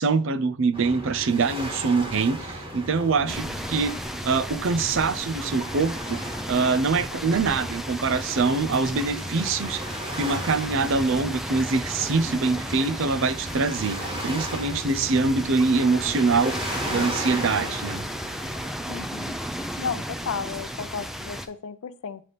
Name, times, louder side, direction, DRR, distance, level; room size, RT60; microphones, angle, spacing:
voice 1, 0.0-3.9 4.2-6.2 6.5-9.8 10.1-16.6 16.9-18.0, right 4 dB, 65° right, 0.5 m, -24 dB
sound 1, 0.7-18.7, equal, 25° right, 1.5 m, -36 dB
sound 2, 3.3-21.5, equal, ahead, 0.4 m, -34 dB
voice 2, 18.9-19.3 19.8-22.2, left 6 dB, 80° left, 0.5 m, -33 dB
9.2 x 3.4 x 4.0 m
head